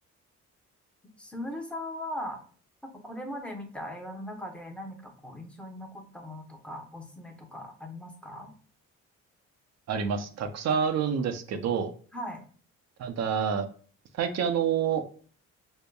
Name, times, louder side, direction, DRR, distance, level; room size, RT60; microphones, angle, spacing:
voice 1, 1.2-2.4 2.8-8.5 12.1-12.4, left 1 dB, 5° left, 1 dB, 0.8 m, -39 dB
voice 2, 9.9-11.9 13.0-13.7 14.1-15.0, right 7 dB, 60° right, 8 dB, 0.6 m, -28 dB
5.3 x 2.1 x 2.2 m, 0.43 s
cardioid pair, 90°, 30 cm